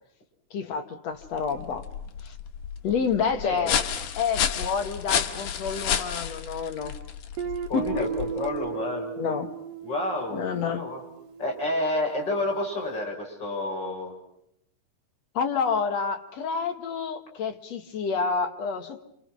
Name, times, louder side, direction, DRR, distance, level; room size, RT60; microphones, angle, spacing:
voice 1, 0.5-1.9 2.2-2.4 2.8-3.8 4.2-7.0 7.7-8.1 9.2-9.5 10.3-10.9 15.3-19.0, left 6 dB, 60° left, 7 dB, 2.3 m, -29 dB
sound 1, 1.2-8.7, left 8 dB, 75° left, 3.0 m, -31 dB
Guitar, 7.4-12.0, right 7 dB, 85° right, 3.3 m, -36 dB
voice 2, 7.7-9.1 9.8-11.0 11.4-14.1, left 2 dB, 30° left, 0 dB, 6.9 m, -30 dB
29.0 x 28.0 x 6.2 m, 0.76 s
omnidirectional pair, 3.7 m